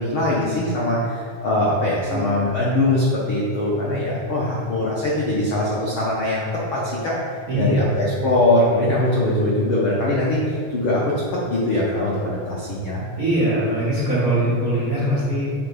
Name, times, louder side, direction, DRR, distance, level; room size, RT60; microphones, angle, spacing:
voice 1, 0.0-13.0, left 1 dB, 80° left, -6 dB, 1.1 m, -22 dB
voice 2, 7.5-8.0 13.2-15.5, right 1 dB, 45° right, -9 dB, 1.1 m, -21 dB
7.3 x 3.6 x 5.3 m, 2.1 s
omnidirectional pair, 3.7 m